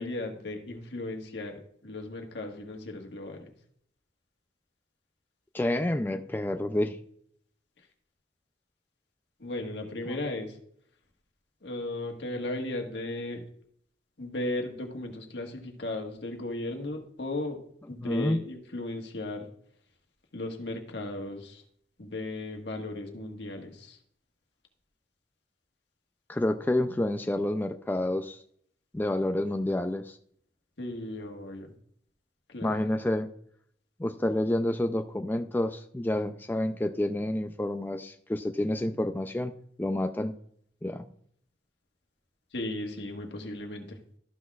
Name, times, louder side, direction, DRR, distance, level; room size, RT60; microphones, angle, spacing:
voice 1, 0.0-3.5 9.4-10.6 11.6-13.4 14.2-17.6 17.9-19.5 20.3-21.6 22.0-24.0 29.4-29.6 30.8-31.7 32.5-32.8 42.5-44.0, left 2 dB, 70° left, 2 dB, 1.5 m, -36 dB
voice 2, 5.5-7.0 10.1-10.2 18.0-18.4 26.3-28.4 28.9-30.2 32.6-33.3 34.0-40.3 40.8-41.1, left 1 dB, 10° left, 7 dB, 0.4 m, -29 dB
13.0 x 6.1 x 2.3 m, 0.65 s
head